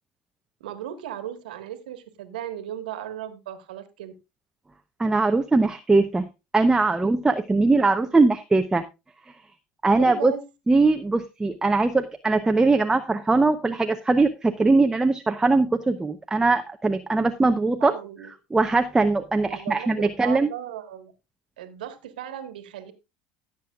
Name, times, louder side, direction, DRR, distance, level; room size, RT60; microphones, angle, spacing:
voice 1, 0.6-4.1 8.0-8.2 9.9-10.5 17.8-18.3 19.4-21.1 21.6-22.9, right 10 dB, 85° right, 8 dB, 1.6 m, -36 dB
voice 2, 5.0-6.3 6.5-8.8 9.8-10.3 10.7-17.9 18.5-20.5, right 3 dB, 15° right, 7 dB, 0.8 m, -21 dB
16.0 x 7.6 x 2.4 m, 0.26 s
hypercardioid pair, 85°, 5 cm